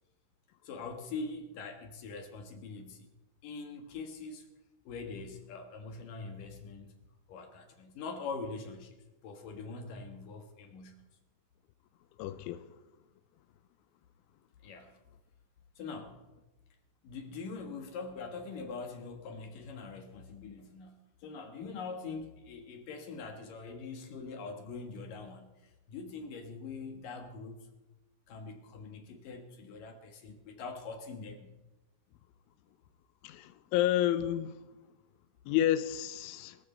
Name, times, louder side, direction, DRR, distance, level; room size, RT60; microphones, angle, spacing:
voice 1, 0.6-3.1 3.4-4.5 4.8-6.9 7.3-9.0 9.2-11.0 14.6-15.0 15.8-16.2 17.0-27.7 28.3-31.5, left 4 dB, 60° left, 2.5 m, -43 dB
voice 2, 12.2-12.7 33.2-34.6 35.5-36.6, left 12 dB, 85° left, 3.1 m, -30 dB
22.5 x 14.0 x 4.4 m
omnidirectional pair, 5.6 m